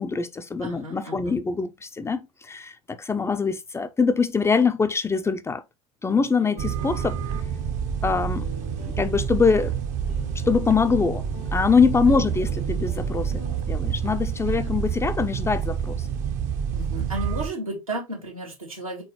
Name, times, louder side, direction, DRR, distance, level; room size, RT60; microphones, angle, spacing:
voice 1, 0.0-5.6 6.0-7.2 8.0-8.5 9.0-9.7 10.5-11.2 11.5-16.1, left 5 dB, 15° left, 0.5 m, -23 dB
voice 2, 0.6-1.4 12.0-12.2 14.5-14.6 16.7-19.0, right 1 dB, 90° right, 2.0 m, -33 dB
sound 1, 6.1-14.2, left 2 dB, 80° left, 1.4 m, -44 dB
sound 2, 6.6-17.5, right 7 dB, 45° right, 0.8 m, -28 dB
4.5 x 3.9 x 3.0 m
figure-of-eight pair, 70°, 17 cm